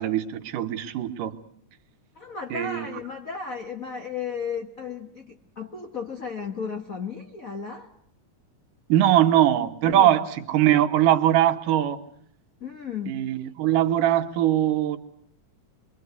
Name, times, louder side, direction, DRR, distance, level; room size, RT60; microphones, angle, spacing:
voice 1, 0.0-1.4 2.5-2.9 8.9-12.0 13.1-15.0, right 12 dB, 85° right, 8 dB, 2.9 m, -21 dB
voice 2, 2.1-7.9 9.8-10.3 12.6-13.2, left 6 dB, 45° left, 4 dB, 1.2 m, -34 dB
27.0 x 23.0 x 8.2 m, 0.64 s
omnidirectional pair, 3.6 m